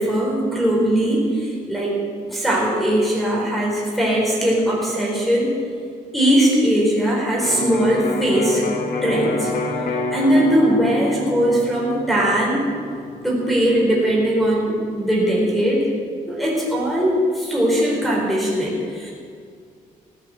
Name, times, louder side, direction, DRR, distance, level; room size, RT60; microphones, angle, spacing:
voice 1, 0.0-2.0 2.3-5.5 6.1-8.6 9.0-9.5 10.1-12.7 13.2-15.9 16.3-19.1, right 1 dB, ahead, -5 dB, 4.6 m, -20 dB
Electric guitar, 7.4-15.2, left 2 dB, 70° left, 1.5 m, -29 dB
16.0 x 9.0 x 8.0 m, 2.2 s
cardioid pair, 105°, 15 cm